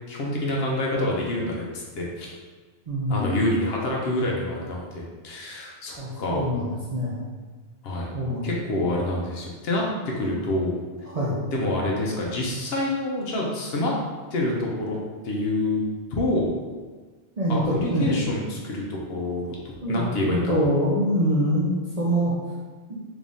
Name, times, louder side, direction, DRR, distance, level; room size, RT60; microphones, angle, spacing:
voice 1, 0.1-2.3 3.1-6.5 7.8-8.1 8.4-10.8 11.5-13.9 14.3-15.0 15.2-15.8 16.1-16.5 17.5-19.5 19.9-20.6, left 1 dB, 65° left, -2 dB, 0.8 m, -27 dB
voice 2, 2.9-3.4 6.0-7.2 8.1-8.5 11.1-11.4 17.4-18.1 19.8-22.3 22.9-23.0, equal, 45° right, -7 dB, 0.5 m, -25 dB
3.4 x 3.4 x 2.6 m, 1.4 s
omnidirectional pair, 1.2 m